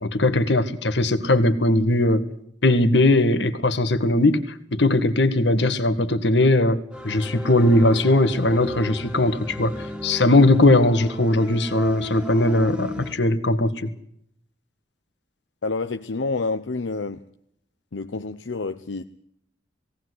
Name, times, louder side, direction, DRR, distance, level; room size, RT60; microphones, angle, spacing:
voice 1, 0.0-2.2 2.6-6.8 7.0-13.9, left 2 dB, 65° left, 1.8 m, -19 dB
sound 1, 6.9-13.1, left 1 dB, 5° right, 2.0 m, -36 dB
voice 2, 15.6-17.2 17.9-19.0, left 3 dB, 80° left, 0.8 m, -28 dB
19.0 x 18.0 x 8.0 m
head